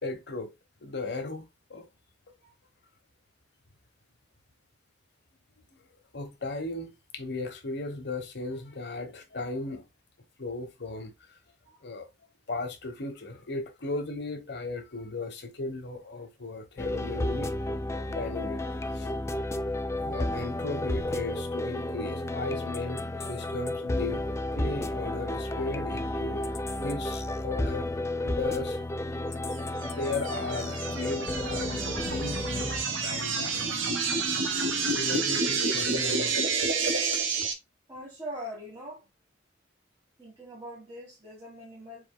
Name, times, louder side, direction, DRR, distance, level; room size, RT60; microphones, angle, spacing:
voice 1, 0.0-0.5 0.8-1.4 1.7-1.9 6.1-9.8 10.4-11.1 11.8-12.1 12.5-17.5 18.1-18.6 18.9-19.1 19.9-24.2 24.5-27.9 28.2-28.8 29.8-32.7 33.0-33.8 35.0-36.7 37.1-37.2, left 3 dB, 60° left, 1.1 m, -36 dB
sound 1, 16.8-32.8, left 1 dB, 15° left, 0.3 m, -32 dB
sound 2, 29.8-37.5, right 4 dB, 85° right, 1.0 m, -29 dB
voice 2, 37.9-39.0 40.2-42.1, equal, 15° right, 1.6 m, -41 dB
5.0 x 4.3 x 2.2 m
head